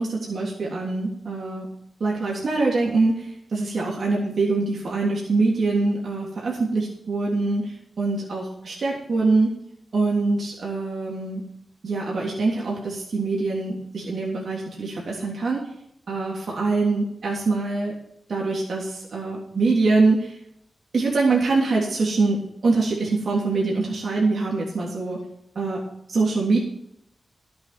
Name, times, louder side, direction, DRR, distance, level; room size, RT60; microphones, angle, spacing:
voice 1, 0.0-1.7 2.0-9.5 9.9-11.4 11.8-15.7 16.1-17.9 18.3-20.4 20.9-25.2 25.5-25.8 26.1-26.6, right 3 dB, 65° right, -3 dB, 3.3 m, -24 dB
12.5 x 8.2 x 6.1 m, 0.76 s
cardioid pair, 85°, 0 cm